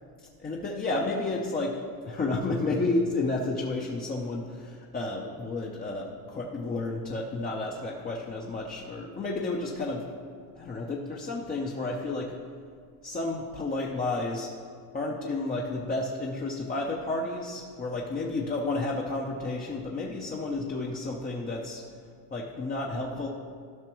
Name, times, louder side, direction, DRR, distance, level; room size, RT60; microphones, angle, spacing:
voice 1, 0.4-10.0 10.5-12.4 13.0-14.5 14.9-21.8 22.3-23.3, left 2 dB, 20° left, -2 dB, 0.6 m, -31 dB
14.0 x 5.8 x 3.0 m, 2.2 s
supercardioid pair, 120°, 47 cm